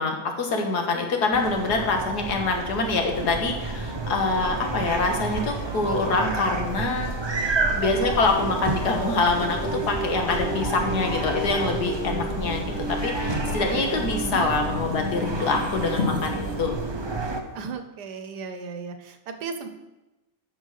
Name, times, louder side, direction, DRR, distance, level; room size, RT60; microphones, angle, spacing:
voice 1, 0.0-7.1 7.7-16.7, left 3 dB, 75° left, 3 dB, 1.9 m, -25 dB
sound 1, 1.3-17.4, right 3 dB, 30° right, 0.5 m, -30 dB
sound 2, 9.4-16.6, equal, 10° right, 1.1 m, -34 dB
sound 3, 12.5-17.8, left 4 dB, 35° left, 2.4 m, -37 dB
voice 2, 13.6-14.4 17.5-19.7, right 5 dB, 80° right, 8 dB, 1.5 m, -37 dB
8.3 x 5.9 x 6.4 m, 1.0 s
omnidirectional pair, 1.7 m